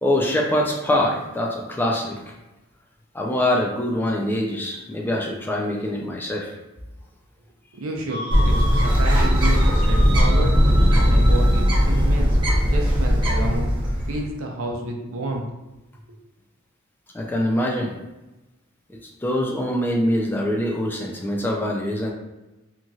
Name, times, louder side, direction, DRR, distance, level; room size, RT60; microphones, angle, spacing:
voice 1, 0.0-2.2 3.1-6.5 11.0-11.1 17.1-17.9 18.9-22.1, left 1 dB, 10° left, -1 dB, 0.3 m, -24 dB
voice 2, 7.7-10.5 10.9-13.7 14.1-15.4, right 1 dB, 80° right, 1 dB, 0.5 m, -30 dB
sound 1, 8.1-11.8, right 1 dB, 60° right, 1.1 m, -33 dB
Bird, 8.3-14.2, equal, 25° right, 0.7 m, -18 dB
2.9 x 2.6 x 2.3 m, 1.0 s
head